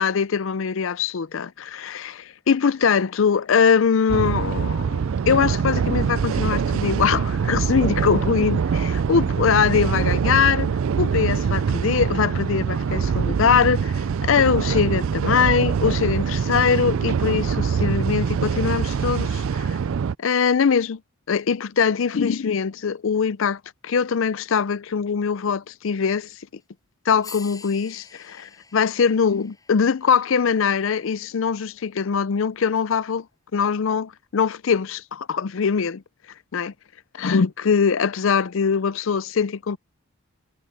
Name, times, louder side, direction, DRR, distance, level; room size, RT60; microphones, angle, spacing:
voice 1, 0.0-10.7 11.0-19.8 20.2-21.0 21.3-26.3 27.1-33.3 33.5-36.0 36.5-36.7 37.1-39.8, left 6 dB, 65° left, 0.5 m, -22 dB
sound 1, 4.1-20.2, right 6 dB, 70° right, 0.4 m, -23 dB
cymbal key scrape, 26.6-26.7 27.2-31.4 32.8-32.9, left 5 dB, 15° left, 6.8 m, -47 dB
head